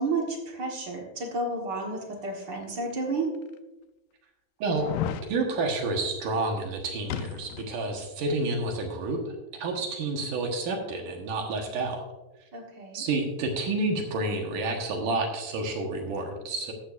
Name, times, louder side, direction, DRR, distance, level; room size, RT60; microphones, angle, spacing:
voice 1, 0.0-3.3 12.5-13.0, right 3 dB, 50° right, 0 dB, 1.4 m, -31 dB
sound 1, 2.8-2.9 3.5-3.6 4.7-5.3 7.1-7.8 8.1-8.2, left 9 dB, 80° left, 2.3 m, -33 dB
voice 2, 5.3-12.0 12.9-16.7, right 2 dB, 70° right, 2 dB, 2.8 m, -29 dB
14.0 x 11.5 x 2.6 m, 1.1 s
omnidirectional pair, 4.1 m